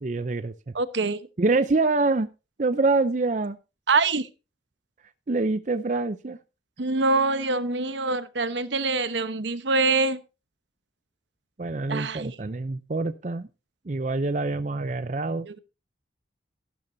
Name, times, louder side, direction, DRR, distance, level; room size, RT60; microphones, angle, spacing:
voice 1, 0.0-0.5 1.4-2.3 2.6-3.6 5.3-6.4 11.6-13.5 13.9-15.5, right 3 dB, 40° right, 12 dB, 0.5 m, -25 dB
voice 2, 0.7-1.2 3.9-4.3 6.8-10.2 11.9-12.3 15.5-15.6, right 3 dB, 75° right, 13 dB, 1.0 m, -25 dB
14.0 x 12.0 x 2.7 m, 0.29 s
head